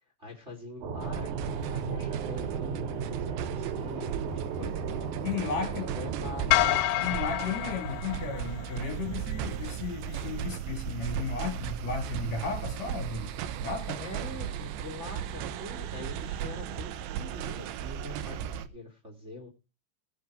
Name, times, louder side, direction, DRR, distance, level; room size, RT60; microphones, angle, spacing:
voice 1, 0.2-4.8 5.6-6.6 14.0-19.5, left 2 dB, 20° right, 1.9 m, -44 dB
sound 1, 0.8-6.8, right 6 dB, 55° right, 2.6 m, -35 dB
sound 2, 1.0-18.7, right 9 dB, 75° right, 2.9 m, -36 dB
voice 2, 5.2-5.9 7.0-13.3 13.6-14.0, left 5 dB, 45° left, 2.8 m, -34 dB
sound 3, 6.5-8.9, left 16 dB, 80° left, 2.9 m, -28 dB
17.5 x 6.6 x 4.9 m
omnidirectional pair, 5.7 m